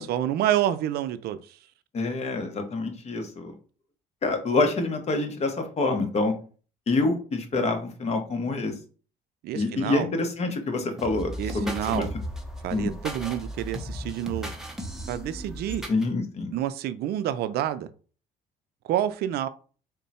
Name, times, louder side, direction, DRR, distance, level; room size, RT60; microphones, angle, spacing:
voice 1, 0.0-1.6 9.4-10.1 11.4-12.1 12.6-14.5 15.1-15.8 16.5-17.9 18.8-19.5, right 12 dB, 70° right, 0.4 m, -28 dB
voice 2, 1.9-3.6 4.2-6.3 6.9-8.7 9.5-12.0 12.7-12.9 15.9-16.5, left 3 dB, 40° left, 0.9 m, -26 dB
sound 1, 11.0-16.1, equal, 5° right, 0.7 m, -36 dB
3.6 x 2.2 x 4.1 m
cardioid pair, 110°, 17 cm